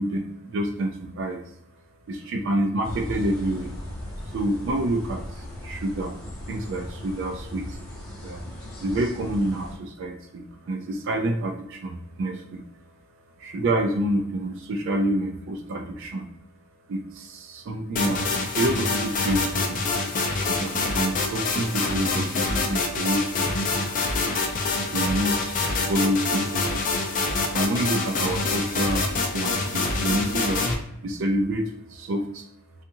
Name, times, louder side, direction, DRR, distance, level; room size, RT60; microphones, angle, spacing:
voice 1, 0.0-1.4 2.1-3.7 4.3-6.2 6.5-7.8 8.2-8.4 8.8-12.6 13.4-16.3 16.9-19.8 20.3-23.6 24.9-27.0 27.5-30.7 31.0-32.5, right 1 dB, 65° right, 4 dB, 0.4 m, -28 dB
sound 1, 2.8-9.8, left 1 dB, 25° left, 1.1 m, -37 dB
sound 2, 18.0-30.8, left 3 dB, 40° left, 0.4 m, -26 dB
2.7 x 2.4 x 2.6 m, 0.72 s
head